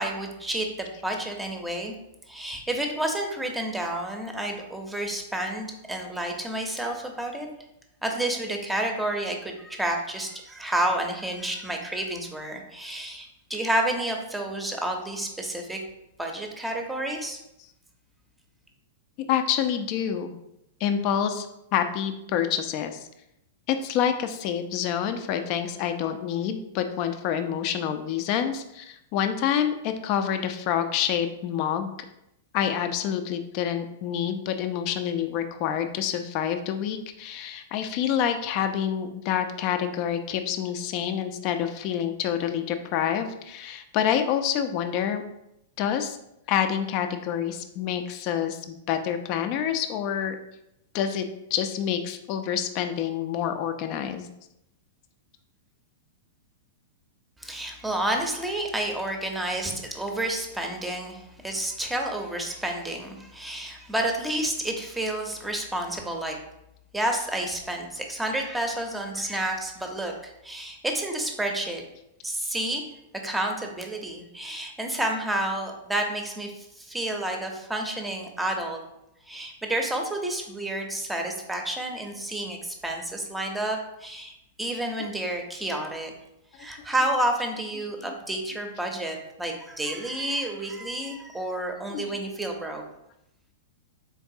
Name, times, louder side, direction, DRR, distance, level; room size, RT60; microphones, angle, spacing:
voice 1, 0.0-1.9 2.3-7.5 8.0-15.8 16.2-17.4 57.4-66.4 66.9-71.8 72.2-72.8 73.2-78.8 79.3-86.1 86.6-92.8, right 1 dB, 5° right, 2 dB, 0.7 m, -30 dB
voice 2, 19.3-20.4 20.8-21.5 21.7-23.1 23.7-31.9 32.5-45.2 45.8-46.2 46.5-50.4 50.9-54.3 88.0-88.1 92.0-92.2, left 9 dB, 45° left, 8 dB, 0.4 m, -27 dB
3.8 x 3.5 x 2.7 m, 0.84 s
hypercardioid pair, 105°, 0 cm